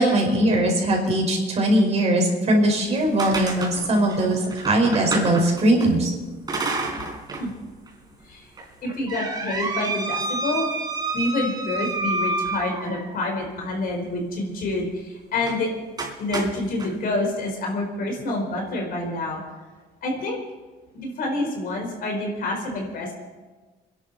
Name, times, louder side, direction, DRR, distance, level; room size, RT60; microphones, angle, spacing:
voice 1, 0.0-6.1, right 1 dB, 40° right, 0 dB, 4.9 m, -20 dB
sound 1, 2.8-5.9 6.5-7.5 7.9-8.0 8.6-13.2 15.4-15.6 16.0-16.9, right 3 dB, 25° right, 3.9 m, -29 dB
voice 2, 8.8-10.7 11.1-15.7 16.2-19.4 20.0-20.4 20.9-23.1, left 2 dB, 60° left, 1 dB, 4.3 m, -27 dB
26.0 x 11.0 x 4.2 m, 1.3 s
cardioid pair, 110°, 17 cm